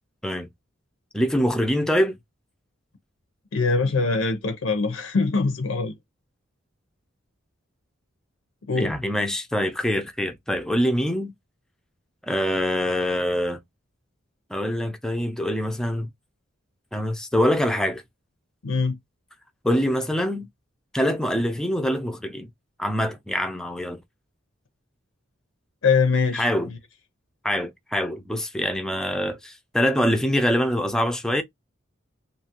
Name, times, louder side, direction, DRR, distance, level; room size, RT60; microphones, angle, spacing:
voice 1, 1.1-2.1 8.8-11.3 12.2-13.6 14.5-16.1 16.9-18.0 19.6-20.5 20.9-22.5 22.8-24.0 26.3-26.7 27.4-31.4, equal, 5° left, 0.3 m, -24 dB
voice 2, 3.5-5.9 8.7-8.9 18.6-19.0 25.8-26.5, left 4 dB, 85° left, 0.6 m, -22 dB
2.7 x 2.3 x 2.8 m
head